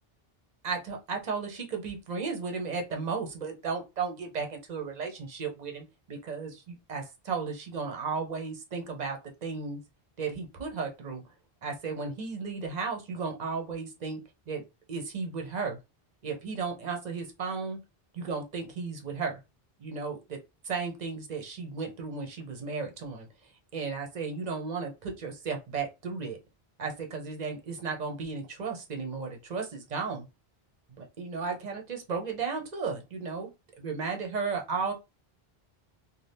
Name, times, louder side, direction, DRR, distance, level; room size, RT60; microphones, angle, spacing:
voice 1, 0.6-9.8 10.2-11.3 11.6-15.8 16.2-17.8 18.1-19.4 19.8-20.4 20.6-26.4 26.8-30.3 31.0-33.5 33.8-34.9, right 5 dB, 45° right, 0.8 m, -34 dB
2.7 x 2.2 x 3.4 m
omnidirectional pair, 1.0 m